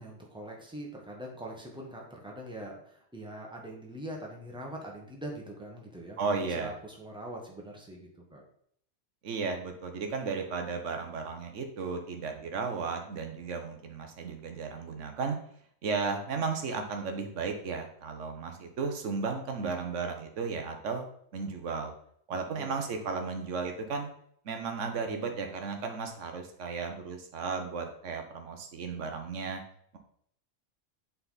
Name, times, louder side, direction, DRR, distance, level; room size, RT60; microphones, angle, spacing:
voice 1, 0.0-8.4 22.3-22.7, right 1 dB, 5° right, -1 dB, 1.4 m, -43 dB
voice 2, 6.2-6.7 9.2-15.4 15.8-21.1 21.3-21.9 22.3-24.1 24.4-29.6, right 4 dB, 75° right, 5 dB, 1.3 m, -34 dB
8.0 x 4.2 x 4.0 m, 0.66 s
omnidirectional pair, 1.3 m